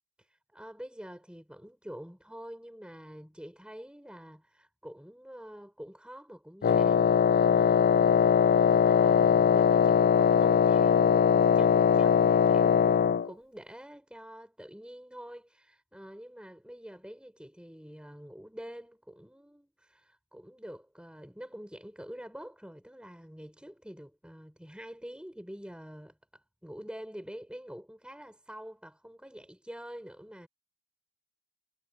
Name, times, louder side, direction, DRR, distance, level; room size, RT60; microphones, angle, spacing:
voice 1, 0.2-8.4 8.7-30.5, equal, 5° right, 6.5 m, -46 dB
Wind instrument woodwind instrument, 6.6-13.3, left 7 dB, 40° left, 0.3 m, -21 dB
head